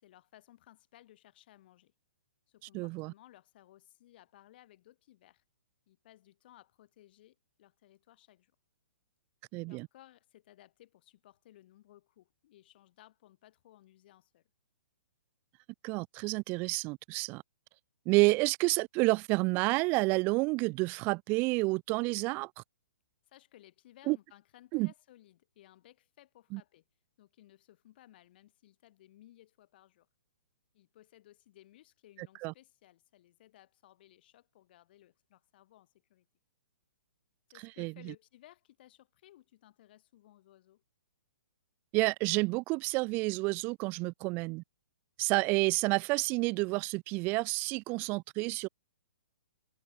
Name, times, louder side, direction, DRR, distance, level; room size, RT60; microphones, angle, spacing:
voice 1, 0.0-1.9 2.5-5.4 5.9-8.5 9.6-14.4 23.3-26.8 27.2-30.1 30.7-36.3 37.5-40.8, left 14 dB, 50° left, 4.5 m, -60 dB
voice 2, 2.7-3.1 9.5-9.9 15.8-17.4 18.1-22.5 24.1-24.2 24.7-24.9 26.5-26.6 32.4-32.5 37.8-38.1 41.9-44.6 45.2-48.7, right 26 dB, 30° right, 0.4 m, -29 dB
figure-of-eight pair, 120°, 7 cm